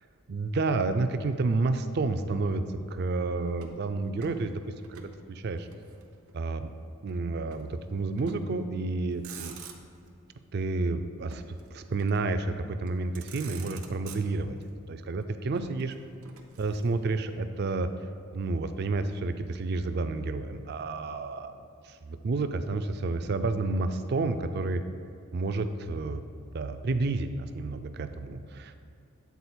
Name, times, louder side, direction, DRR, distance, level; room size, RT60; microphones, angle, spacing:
voice 1, 0.3-2.6 2.9-4.6 4.9-5.7 6.3-6.7 7.0-9.5 10.5-11.4 11.7-14.6 14.9-16.0 16.6-17.9 18.3-21.5 21.8-24.8 25.3-26.2 26.5-28.8, right 3 dB, 50° right, 9 dB, 0.3 m, -30 dB
Motor vehicle (road), 3.5-5.2 5.4-6.5 7.5-7.7 8.2-8.6 9.0-10.1 11.3-12.4 12.9-13.0 13.1-14.7 15.5-17.2, right 7 dB, 90° right, 0.7 m, -48 dB
8.2 x 4.1 x 4.4 m, 2.5 s
head